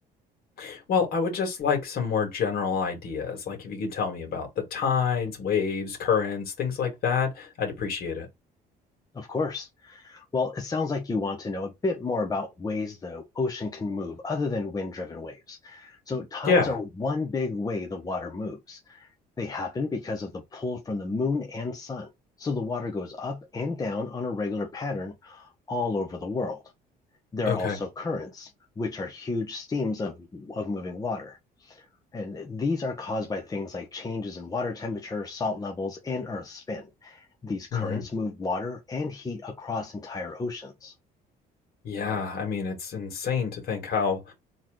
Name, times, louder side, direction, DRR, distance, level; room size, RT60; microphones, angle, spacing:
voice 1, 0.6-8.3 16.4-16.7 27.5-27.8 37.7-38.0 41.8-44.3, left 6 dB, 60° left, 2.5 m, -27 dB
voice 2, 9.1-19.1 19.4-22.1 22.4-26.6 27.3-28.5 28.8-31.9 32.1-40.9, left 3 dB, 20° left, 1.0 m, -31 dB
4.1 x 3.2 x 3.8 m
cardioid pair, 110°, 17 cm